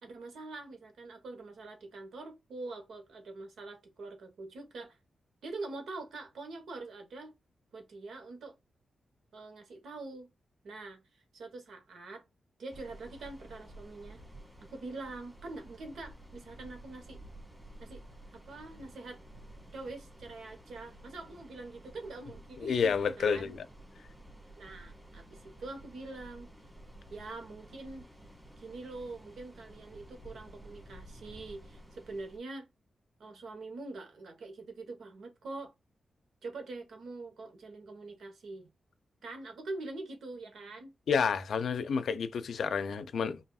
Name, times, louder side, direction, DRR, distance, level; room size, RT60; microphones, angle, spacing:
voice 1, 0.0-5.0 5.4-7.3 7.7-8.5 9.3-10.3 10.6-12.2 12.6-14.2 14.6-17.2 17.8-18.0 18.3-19.2 19.7-23.5 24.6-26.5 27.1-28.1 28.6-32.7 33.2-35.7 36.4-38.7 39.2-40.9, right 3 dB, 85° right, 1.3 m, -44 dB
sound 1, 12.7-32.4, right 1 dB, 10° right, 1.6 m, -52 dB
voice 2, 22.6-23.7 41.1-43.4, left 6 dB, 75° left, 0.5 m, -30 dB
5.4 x 2.7 x 2.4 m
wide cardioid pair, 130°, 0 cm